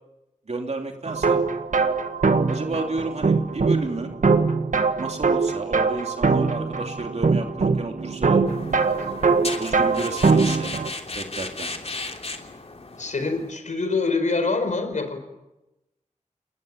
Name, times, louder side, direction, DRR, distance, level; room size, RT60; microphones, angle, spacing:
voice 1, 0.5-1.4 2.5-4.1 5.0-8.4 9.5-10.7 11.1-11.7, right 2 dB, 60° right, 3 dB, 3.1 m, -31 dB
sound 1, 1.1-10.9, right 4 dB, 85° right, 1.6 m, -22 dB
sound 2, 8.5-13.5, left 3 dB, 55° left, 3.1 m, -35 dB
voice 2, 13.0-15.2, left 3 dB, 75° left, 8 dB, 4.7 m, -25 dB
29.0 x 20.0 x 8.9 m, 0.98 s
wide cardioid pair, 80°, 13 cm